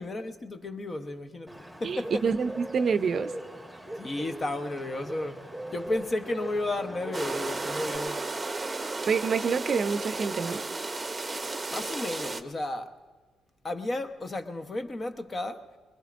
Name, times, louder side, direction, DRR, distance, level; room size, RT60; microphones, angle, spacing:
voice 1, 0.0-2.2 4.0-8.4 11.7-13.0 13.6-15.6, left 2 dB, 35° left, 0.9 m, -33 dB
Bird, 1.5-8.0, right 1 dB, 5° left, 1.7 m, -40 dB
voice 2, 1.8-3.3 9.1-10.6, right 5 dB, 50° right, 0.5 m, -27 dB
sound 1, 7.1-12.4, right 3 dB, 20° right, 0.8 m, -33 dB
22.0 x 21.0 x 2.5 m
cardioid pair, 90°, 0 cm